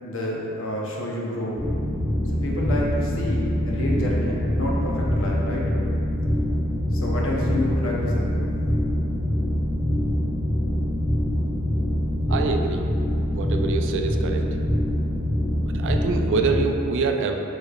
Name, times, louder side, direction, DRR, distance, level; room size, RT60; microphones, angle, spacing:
voice 1, 0.0-1.6 2.4-5.6 6.9-8.3, left 1 dB, 60° left, -3 dB, 0.7 m, -29 dB
sound 1, 1.6-16.6, equal, 15° left, 0.9 m, -24 dB
voice 2, 12.3-12.8 13.3-14.4 15.7-17.4, right 4 dB, 55° right, 4 dB, 0.3 m, -25 dB
6.6 x 3.2 x 2.3 m, 2.7 s
head